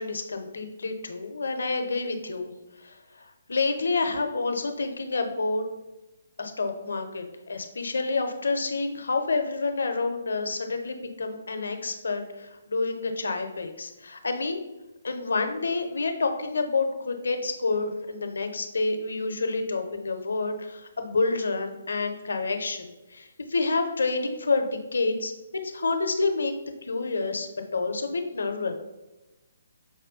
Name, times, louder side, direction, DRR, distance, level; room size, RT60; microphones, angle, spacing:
voice 1, 0.0-2.5 2.8-5.6 6.4-14.6 15.0-25.3 25.6-26.5 26.8-28.7, left 3 dB, 70° left, 6 dB, 0.6 m, -28 dB
5.4 x 2.2 x 3.6 m, 1.0 s
figure-of-eight pair, 135°, 0 cm